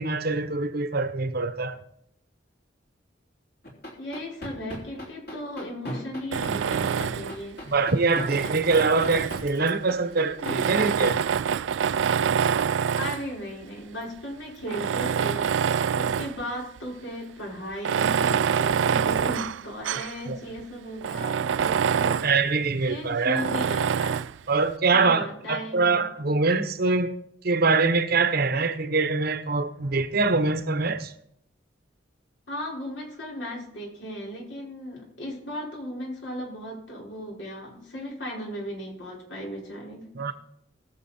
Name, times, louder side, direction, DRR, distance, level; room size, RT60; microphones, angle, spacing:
voice 1, 0.0-1.8 7.7-11.2 20.3-20.4 22.2-23.4 24.5-27.1 27.4-31.1 40.1-40.3, right 3 dB, 55° right, 1.0 m, -24 dB
sound 1, 3.6-11.1, equal, 60° left, 3.5 m, -35 dB
voice 2, 4.0-7.6 13.0-22.3 22.9-24.2 24.9-26.1 32.5-40.3, equal, 90° left, 5.2 m, -36 dB
Tools, 6.3-7.4 8.1-9.7 10.4-13.3 14.0-14.1 14.6-16.4 16.8-16.9 17.7-20.2 20.6-20.7 21.0-22.4 23.3-24.4, right 7 dB, 80° right, 0.4 m, -26 dB
21.0 x 7.2 x 4.3 m
head